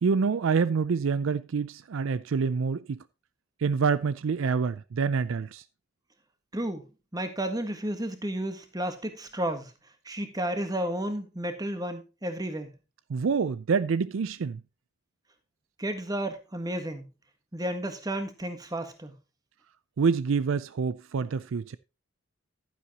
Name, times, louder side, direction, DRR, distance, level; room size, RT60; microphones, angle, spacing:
voice 1, 0.0-3.0 3.6-5.6 13.1-14.6 20.0-21.8, right 5 dB, 65° right, 0.4 m, -26 dB
voice 2, 6.5-9.7 10.0-12.7 15.8-17.1 17.5-19.2, right 1 dB, 15° right, 1.5 m, -32 dB
11.5 x 9.8 x 2.8 m
head